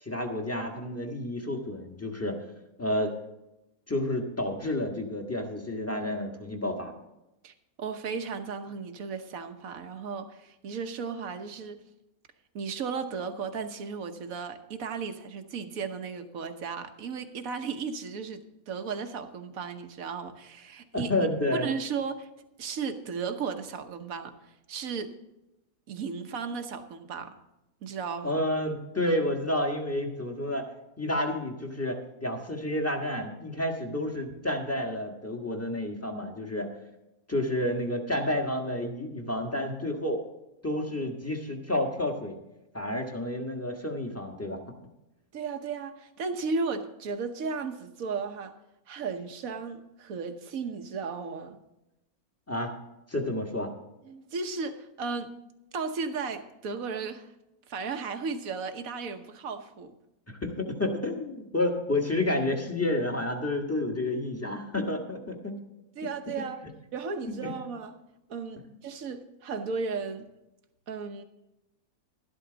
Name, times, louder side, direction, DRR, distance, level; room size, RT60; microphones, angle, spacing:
voice 1, 0.0-2.4 2.8-3.1 3.9-6.9 20.9-21.7 28.2-30.7 31.0-36.7 37.3-40.2 40.6-42.4 42.7-44.6 52.5-52.8 53.1-53.7 60.3-65.6 67.4-67.5, left 1 dB, 10° left, 2 dB, 1.4 m, -30 dB
voice 2, 7.4-11.8 12.5-21.1 21.5-22.3 22.6-25.1 25.9-27.3 27.8-28.4 45.3-48.6 48.9-51.6 54.0-55.3 55.7-57.3 57.7-59.9 66.0-66.6 66.9-67.9 68.3-70.3 70.9-71.2, right 5 dB, 65° right, 8 dB, 1.4 m, -35 dB
12.5 x 12.0 x 3.9 m, 0.93 s
omnidirectional pair, 1.6 m